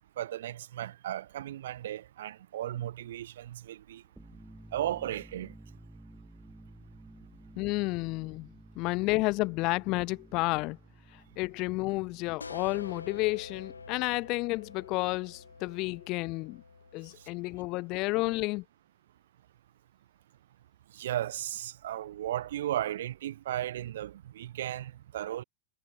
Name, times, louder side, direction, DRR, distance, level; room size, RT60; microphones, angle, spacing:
voice 1, 0.2-4.0 4.7-5.5 17.2-17.3 20.9-25.4, right 12 dB, 60° right, 2.7 m, -35 dB
sound 1, 4.0-15.6, right 1 dB, 5° right, 6.7 m, -54 dB
voice 2, 7.6-8.5 8.8-10.8 11.4-16.6 16.9-18.6, left 23 dB, 40° left, 1.8 m, -31 dB
sound 2, 12.4-17.9, left 4 dB, 75° left, 7.7 m, -47 dB
figure-of-eight pair, 90°, 0 cm